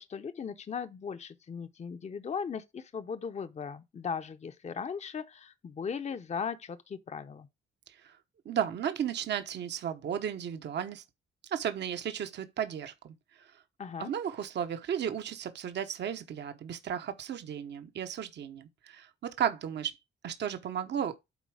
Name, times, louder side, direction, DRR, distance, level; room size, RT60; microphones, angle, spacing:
voice 1, 0.0-7.5 13.8-14.1, left 6 dB, 35° left, 0.8 m, -38 dB
voice 2, 8.4-11.0 11.4-13.6 14.0-20.0 20.2-21.2, right 9 dB, 60° right, 1.1 m, -34 dB
8.3 x 4.3 x 4.8 m
cardioid pair, 90°, 20 cm